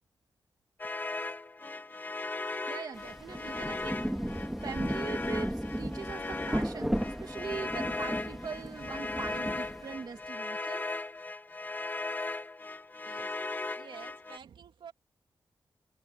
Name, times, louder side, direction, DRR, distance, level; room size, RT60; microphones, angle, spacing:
sound 1, 0.8-14.4, left 2 dB, 25° left, 2.1 m, -38 dB
voice 1, 2.5-4.0 4.6-10.9, right 5 dB, 55° right, 2.2 m, -41 dB
Rain, 3.0-10.2, equal, 5° right, 2.0 m, -35 dB
voice 2, 13.0-13.4 13.7-14.9, right 7 dB, 90° right, 2.7 m, -50 dB
wide cardioid pair, 145°, 8 cm